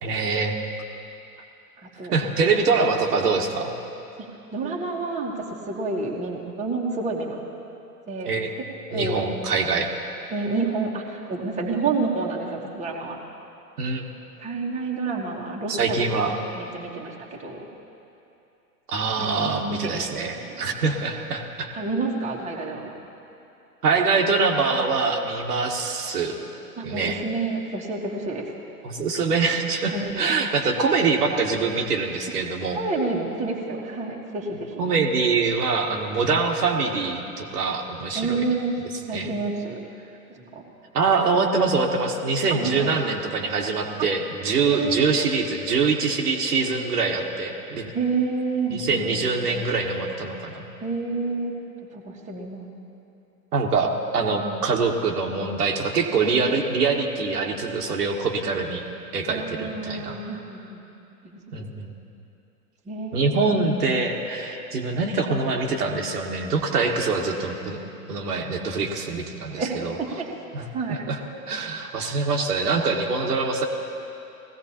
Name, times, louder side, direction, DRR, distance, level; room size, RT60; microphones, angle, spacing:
voice 1, 0.0-0.5 2.1-3.7 8.2-8.5 8.9-9.9 13.8-14.0 15.7-16.3 18.9-21.7 23.8-26.4 26.8-27.2 28.8-32.8 34.8-38.4 39.1-39.3 40.9-47.9 48.7-50.6 53.5-58.8 59.1-60.2 61.5-61.9 63.1-67.8 68.1-69.9 70.5-70.6 70.9-71.2 71.5-73.7, right 4 dB, 70° right, 1 dB, 1.5 m, -24 dB
voice 2, 1.8-2.2 4.2-7.4 8.1-8.3 8.9-9.3 10.3-13.2 14.4-16.2 16.5-17.7 19.2-20.8 21.7-22.9 26.8-28.5 29.9-30.3 32.7-34.8 38.1-38.8 39.1-39.8 40.3-40.6 42.5-43.0 44.0-44.1 44.6-45.3 47.9-49.6 50.8-51.5 51.9-52.6 54.3-54.7 59.3-60.9 61.2-61.7 62.9-63.6 69.6-70.3 70.6-71.0, right 3 dB, 15° right, -2 dB, 1.5 m, -29 dB
20.5 x 15.5 x 2.9 m, 2.8 s
figure-of-eight pair, 105°, 49 cm